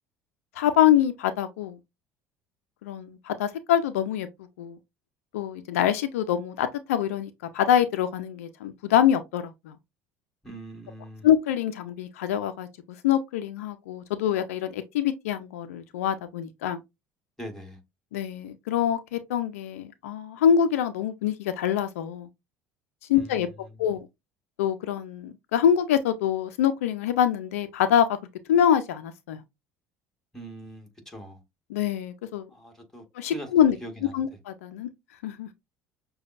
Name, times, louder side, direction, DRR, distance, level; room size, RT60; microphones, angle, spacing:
voice 1, 0.6-1.8 2.8-4.3 4.6-4.8 5.3-9.7 11.2-12.7 13.0-16.8 18.1-22.3 23.1-23.5 23.8-24.1 24.6-28.2 28.5-29.4 31.7-32.5 33.2-33.8 34.1-34.9 35.2-35.5, left 9 dB, 80° left, 0.5 m, -25 dB
voice 2, 10.4-11.3 17.4-17.8 23.1-24.0 30.3-31.4 32.5-33.5 33.8-34.4, right 1 dB, 5° left, 1.9 m, -42 dB
6.6 x 2.3 x 2.5 m
hypercardioid pair, 70°, 8 cm